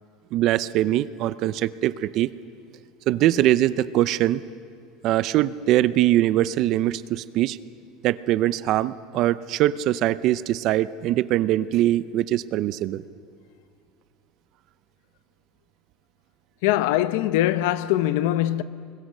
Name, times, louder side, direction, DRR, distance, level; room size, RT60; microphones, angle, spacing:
voice 1, 0.3-2.3 3.1-4.4 5.0-7.6 8.0-13.0, right 14 dB, 45° right, 0.6 m, -22 dB
voice 2, 16.6-18.6, left 13 dB, 75° left, 0.7 m, -22 dB
25.5 x 21.5 x 6.6 m
cardioid pair, 155°, 0 cm